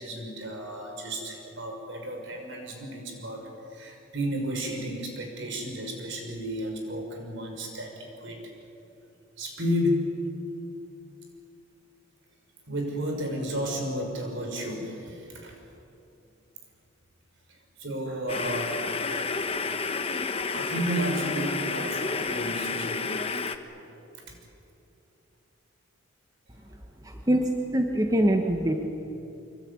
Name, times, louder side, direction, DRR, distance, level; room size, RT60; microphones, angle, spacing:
voice 1, 0.0-8.5 9.4-10.2 12.7-15.6 17.5-18.8 19.4-19.5 20.5-23.2 23.7-23.9 24.3-24.4 26.6-26.7, equal, 60° right, 2 dB, 5.8 m, -32 dB
sound 1, 18.3-23.6, left 4 dB, 30° left, 1.2 m, -30 dB
voice 2, 27.0-28.9, right 1 dB, 15° right, 3 dB, 1.4 m, -24 dB
25.0 x 23.0 x 9.8 m, 2.8 s
head